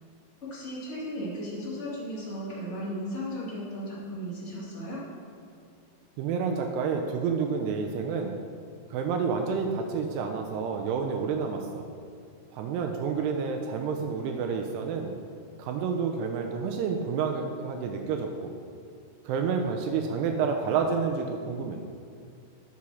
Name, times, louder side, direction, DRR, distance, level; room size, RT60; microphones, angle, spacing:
voice 1, 0.4-5.0, equal, 30° left, -8 dB, 1.4 m, -35 dB
voice 2, 6.2-8.4 8.9-11.9 12.5-15.2 15.6-18.5 19.2-21.8, right 5 dB, 80° right, 3 dB, 2.6 m, -29 dB
8.5 x 6.2 x 6.2 m, 2.3 s
omnidirectional pair, 5.0 m